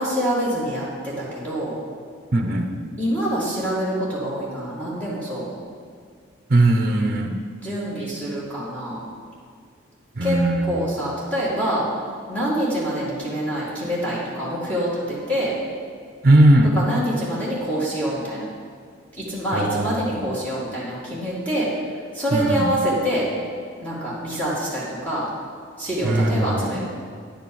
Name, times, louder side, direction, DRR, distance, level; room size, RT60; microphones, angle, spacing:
voice 1, 0.0-1.7 3.0-5.5 7.6-9.0 10.2-10.4 10.7-11.9 12.3-15.5 16.7-18.4 19.3-21.7 22.1-23.3 23.8-25.3 25.8-26.8, equal, 10° left, -8 dB, 2.1 m, -25 dB
voice 2, 2.3-2.7 6.5-7.3 10.2-10.8 16.2-16.8 19.5-20.3 22.3-22.7 26.0-26.8, right 1 dB, 45° right, 5 dB, 0.8 m, -19 dB
10.0 x 6.0 x 7.1 m, 2.1 s
head